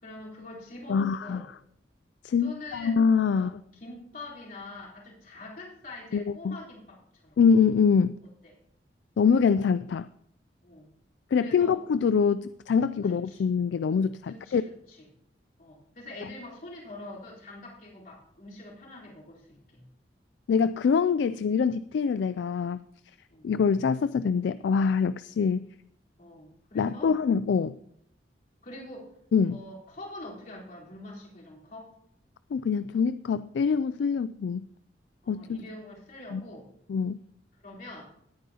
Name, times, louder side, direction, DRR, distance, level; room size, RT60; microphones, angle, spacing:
voice 1, 0.0-1.5 2.4-3.0 3.3-7.4 10.6-10.9 11.3-11.8 13.0-13.4 14.3-15.1 15.6-19.8 23.3-23.5 26.2-27.1 28.6-29.1 29.5-31.9 35.2-36.7 37.5-38.1, left 2 dB, 50° left, -4 dB, 4.0 m, -45 dB
voice 2, 0.9-1.4 2.2-3.6 6.1-6.6 7.4-8.2 9.2-10.1 11.3-14.6 20.5-22.8 23.4-25.7 26.7-27.8 29.3-29.6 32.5-34.7 35.3-35.6 36.3-36.4 36.9-37.2, left 6 dB, 75° left, 14 dB, 0.3 m, -24 dB
18.5 x 9.2 x 2.9 m, 0.72 s
head